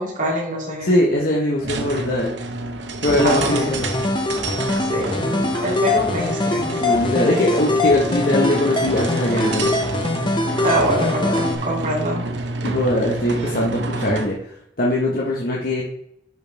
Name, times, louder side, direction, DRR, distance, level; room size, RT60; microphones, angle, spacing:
voice 1, 0.0-0.9 3.2-3.7 4.9-6.8 10.6-12.2, equal, 45° right, -3 dB, 2.8 m, -24 dB
voice 2, 0.8-2.3 3.0-3.9 6.8-9.7 12.6-14.4 14.8-15.8, left 1 dB, 50° left, -3 dB, 1.2 m, -21 dB
sound 1, 1.6-14.4, right 2 dB, 70° right, 1.0 m, -29 dB
sound 2, 3.1-11.5, left 2 dB, 25° left, 0.8 m, -23 dB
10.5 x 4.8 x 3.5 m, 0.73 s
head